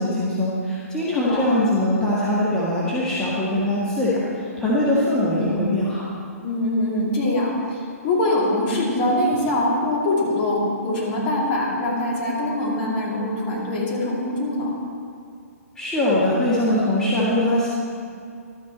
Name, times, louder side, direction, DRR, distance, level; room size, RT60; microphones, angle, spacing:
voice 1, 0.0-6.1 15.7-17.7, left 1 dB, 5° left, -8 dB, 1.7 m, -22 dB
voice 2, 1.1-1.6 5.4-5.7 6.4-14.8, left 1 dB, 35° left, -4 dB, 2.6 m, -23 dB
12.5 x 9.2 x 4.3 m, 2.3 s
figure-of-eight pair, 125°, 8 cm